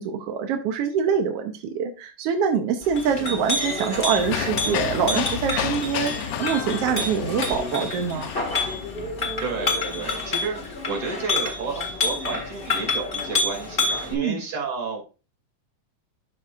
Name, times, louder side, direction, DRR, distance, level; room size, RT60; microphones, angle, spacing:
voice 1, 0.0-8.3 14.1-14.4, right 7 dB, 70° right, 5 dB, 1.5 m, -25 dB
Chink clink, 2.8-14.1, left 2 dB, 25° left, 1.2 m, -28 dB
sound 1, 4.2-10.7, left 10 dB, 85° left, 2.1 m, -31 dB
voice 2, 9.4-10.6 10.9-15.0, right 4 dB, 50° right, -2 dB, 3.2 m, -31 dB
11.5 x 6.0 x 2.4 m, 0.34 s
omnidirectional pair, 3.5 m